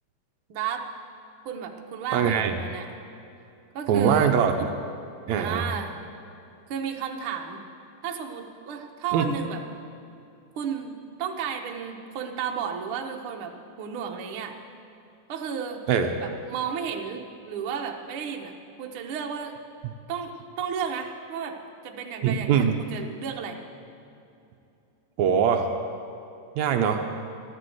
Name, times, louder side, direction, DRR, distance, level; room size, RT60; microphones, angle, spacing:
voice 1, 0.5-0.8 1.4-2.9 3.7-4.4 5.3-5.9 6.7-7.6 8.0-9.6 10.5-14.5 15.3-15.8 16.2-18.5 18.8-19.5 20.1-21.6 21.8-23.6, right 7 dB, 60° right, 2 dB, 1.7 m, -33 dB
voice 2, 2.1-2.6 3.9-4.5 5.3-5.6 9.1-9.3 15.9-16.1 22.2-22.7 25.2-25.7 26.6-27.0, right 7 dB, 75° right, 5 dB, 2.0 m, -22 dB
13.5 x 12.0 x 7.9 m, 2.7 s
omnidirectional pair, 3.3 m